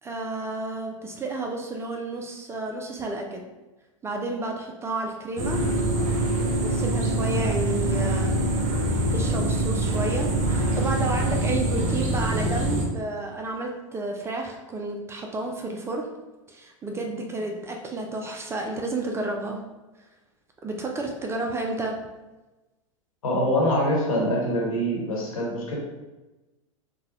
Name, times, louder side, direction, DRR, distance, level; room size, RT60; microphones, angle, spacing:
voice 1, 0.0-3.5 4.0-5.7 6.6-8.4 9.1-16.1 16.5-19.6 20.6-22.0, right 2 dB, 15° right, 2 dB, 0.4 m, -31 dB
sound 1, 5.4-12.9, right 1 dB, 40° right, 0.9 m, -24 dB
voice 2, 23.2-25.8, equal, 80° left, -3 dB, 1.2 m, -24 dB
3.8 x 2.2 x 2.9 m, 1.1 s
hypercardioid pair, 105°, 17 cm